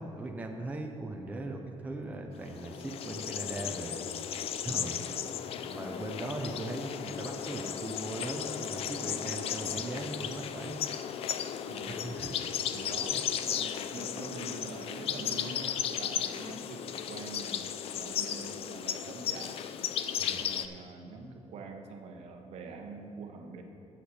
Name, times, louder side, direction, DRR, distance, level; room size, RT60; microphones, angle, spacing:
voice 1, 0.0-4.1 4.6-5.2 5.6-10.8 11.9-12.3 20.2-20.5, right 2 dB, 15° right, 2 dB, 0.6 m, -39 dB
sound 1, 2.4-20.7, left 9 dB, 60° left, 0.4 m, -35 dB
voice 2, 5.0-5.5 11.7-12.1 12.7-17.7 17.9-19.6 20.4-23.6, right 3 dB, 65° right, 4 dB, 1.0 m, -45 dB
8.2 x 5.7 x 7.6 m, 3.0 s
cardioid pair, 165°, 12 cm